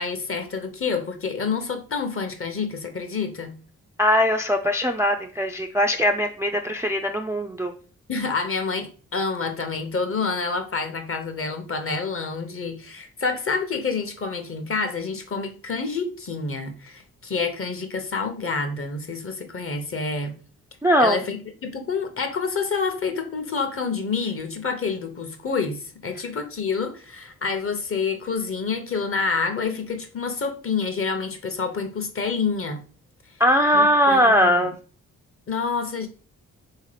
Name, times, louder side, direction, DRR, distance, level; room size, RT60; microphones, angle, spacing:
voice 1, 0.0-3.5 8.1-20.4 21.0-32.8 33.7-34.7 35.5-36.1, left 4 dB, 40° left, 7 dB, 0.8 m, -28 dB
voice 2, 4.0-7.7 20.8-21.2 33.4-34.7, equal, 10° right, 4 dB, 0.3 m, -20 dB
3.4 x 2.8 x 3.2 m, 0.39 s
supercardioid pair, 45°, 36 cm